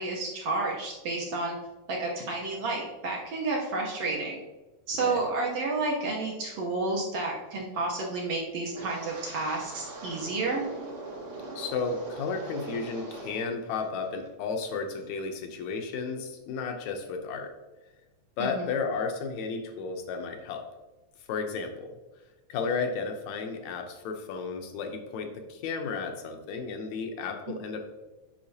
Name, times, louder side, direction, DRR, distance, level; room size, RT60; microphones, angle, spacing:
voice 1, 0.0-1.5 1.9-4.4 4.9-10.6 18.4-18.7, right 3 dB, 65° right, -2 dB, 1.7 m, -31 dB
Wind, 8.7-13.6 13.8-14.3 14.7-15.0, right 2 dB, 85° right, 3.3 m, -41 dB
voice 2, 11.6-17.5 18.4-20.6 21.3-22.0 22.5-27.8, left 5 dB, 75° left, 4 dB, 2.0 m, -33 dB
8.6 x 5.6 x 2.8 m, 1.1 s
omnidirectional pair, 3.5 m